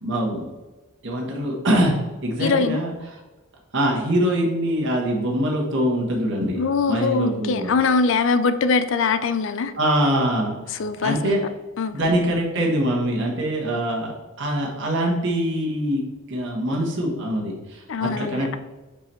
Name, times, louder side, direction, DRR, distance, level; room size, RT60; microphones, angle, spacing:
voice 1, 0.0-0.4 1.0-2.9 3.7-6.6 6.9-7.7 9.8-11.4 11.9-16.0 16.3-18.6, right 1 dB, 55° right, -2 dB, 1.2 m, -23 dB
voice 2, 2.4-2.8 6.6-9.7 10.8-11.4 11.8-12.0 17.9-18.6, left 4 dB, 60° left, 12 dB, 0.4 m, -22 dB
4.8 x 4.8 x 4.4 m, 1.2 s
head